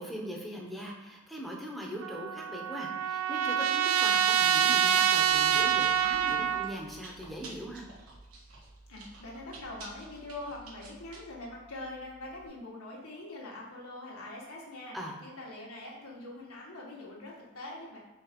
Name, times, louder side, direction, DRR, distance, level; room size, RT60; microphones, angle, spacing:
voice 1, 0.0-7.9 14.9-15.1, equal, ahead, -1 dB, 0.9 m, -41 dB
Trumpet, 2.0-6.7, right 9 dB, 70° right, 0.4 m, -26 dB
Chewing mastication, 5.2-12.5, right 2 dB, 90° right, 1.7 m, -51 dB
voice 2, 8.9-18.0, left 2 dB, 80° left, -3 dB, 1.7 m, -43 dB
4.9 x 4.1 x 5.3 m, 1.1 s
head